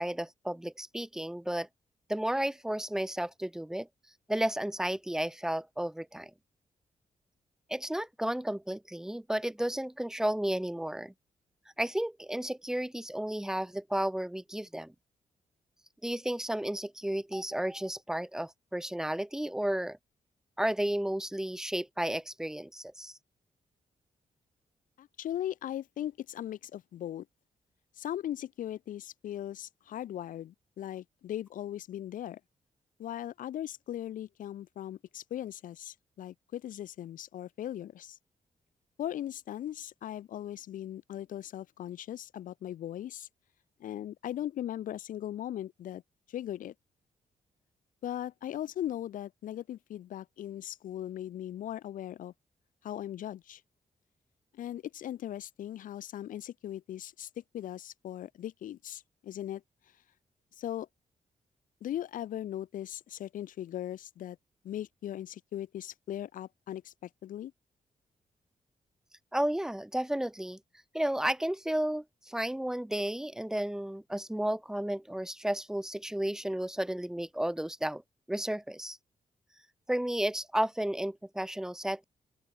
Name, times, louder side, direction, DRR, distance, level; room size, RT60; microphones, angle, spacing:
voice 1, 0.0-1.7 2.1-3.9 4.3-6.3 7.7-11.1 11.8-14.9 16.0-20.0 20.6-23.2 69.3-70.6 70.9-78.0 78.3-79.0 79.9-82.0, right 1 dB, 5° right, 1.0 m, -32 dB
voice 2, 25.0-27.3 28.0-32.4 33.0-38.2 39.0-43.3 43.8-46.0 46.3-46.7 48.0-52.3 52.8-53.6 54.5-59.6 60.6-60.9 61.8-64.4 64.6-67.5, left 11 dB, 85° left, 0.7 m, -39 dB
open air
wide cardioid pair, 140°, 14 cm